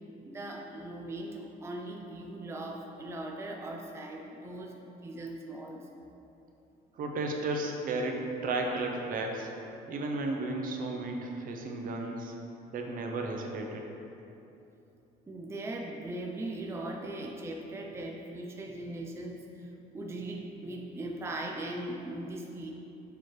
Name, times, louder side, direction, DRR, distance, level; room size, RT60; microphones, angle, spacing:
voice 1, 0.2-6.1 15.3-22.7, right 1 dB, 15° right, 0 dB, 0.5 m, -39 dB
voice 2, 6.9-9.5 9.9-12.3 12.7-13.8, right 2 dB, 55° right, 2 dB, 0.8 m, -33 dB
7.0 x 3.1 x 4.7 m, 2.9 s
cardioid pair, 110°, 17 cm